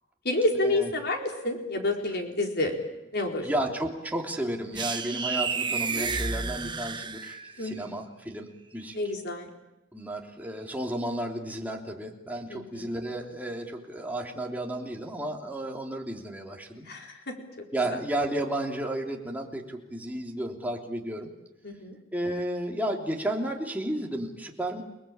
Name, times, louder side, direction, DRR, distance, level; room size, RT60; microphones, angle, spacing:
voice 1, 0.2-2.7 3.1-3.4 7.6-8.0 8.9-9.5 12.5-12.9 16.8-17.3 21.6-21.9, left 2 dB, 55° left, 2 dB, 4.4 m, -29 dB
voice 2, 3.3-9.0 9.9-16.9 17.7-21.3 22.1-24.8, right 1 dB, 10° right, 0 dB, 3.2 m, -33 dB
sound 1, 4.7-7.6, right 5 dB, 25° right, 1.2 m, -31 dB
30.0 x 19.5 x 8.9 m, 0.97 s
head